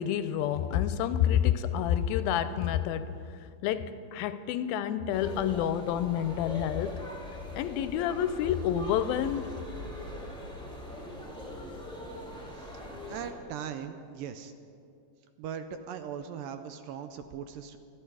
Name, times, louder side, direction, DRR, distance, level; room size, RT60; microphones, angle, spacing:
voice 1, 0.0-3.1 3.6-7.0 7.5-9.5, left 10 dB, 80° left, 2.3 m, -28 dB
sound 1, 5.1-13.3, left 1 dB, 5° left, 0.8 m, -41 dB
voice 2, 12.5-12.8 13.1-14.5 15.4-17.8, right 8 dB, 80° right, 2.2 m, -39 dB
26.0 x 9.9 x 4.8 m
omnidirectional pair, 4.3 m